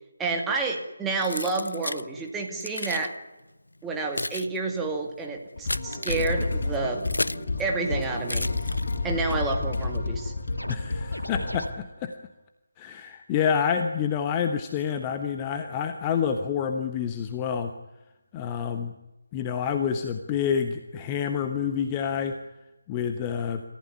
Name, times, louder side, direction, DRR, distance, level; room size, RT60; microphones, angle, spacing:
voice 1, 0.2-3.1 3.8-7.1 7.6-8.5 9.0-10.3, right 3 dB, 5° right, 1 dB, 2.3 m, -29 dB
Keys jangling, 1.2-2.1 2.6-3.1 3.8-7.5 8.2-9.2, left 2 dB, 70° left, 0.8 m, -33 dB
sound 1, 5.6-11.7, left 3 dB, 45° left, 5.9 m, -30 dB
sound 2, 6.2-6.9 7.5-7.6 7.7-7.8 8.0-8.4 8.6-9.6 9.9-10.1 10.4-11.7, equal, 90° left, 1.7 m, -39 dB
voice 2, 10.7-12.1 12.8-17.7 18.3-18.9 19.3-22.3 22.9-23.6, left 7 dB, 15° left, 6 dB, 1.1 m, -28 dB
28.0 x 15.0 x 9.8 m, 1.0 s
figure-of-eight pair, 155°, 0 cm